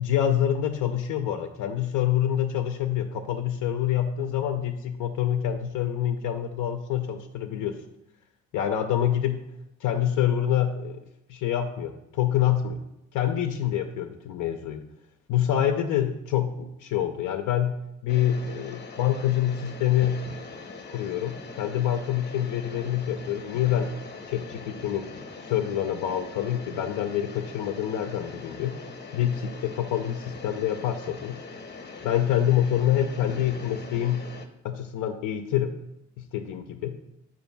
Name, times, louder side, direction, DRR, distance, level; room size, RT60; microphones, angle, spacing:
voice 1, 0.0-7.8 8.5-9.4 9.8-11.0 11.3-12.8 13.1-14.8 15.3-17.8 18.0-20.3 20.9-23.9 24.3-25.1 25.4-28.7 29.1-31.4 32.0-34.2 34.6-35.8 36.2-36.9, left 10 dB, 85° left, 5 dB, 0.5 m, -26 dB
sound 1, 18.1-34.5, left 4 dB, 35° left, 0.8 m, -42 dB
7.1 x 2.6 x 5.2 m, 0.83 s
cardioid pair, 90°, 30 cm